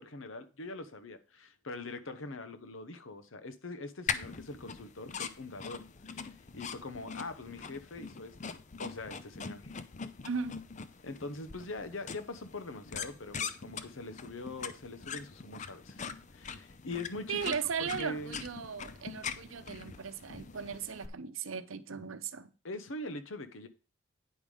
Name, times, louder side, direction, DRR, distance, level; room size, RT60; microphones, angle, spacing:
voice 1, 0.0-5.8 6.1-8.5 8.8-9.7 11.0-16.0 16.3-17.5 18.0-18.4 22.6-23.7, left 2 dB, 80° left, 1.0 m, -43 dB
sound 1, 4.1-21.1, left 6 dB, 35° left, 0.5 m, -43 dB
voice 2, 10.2-10.6 17.3-22.5, right 6 dB, 85° right, 0.7 m, -37 dB
9.5 x 4.9 x 5.4 m
head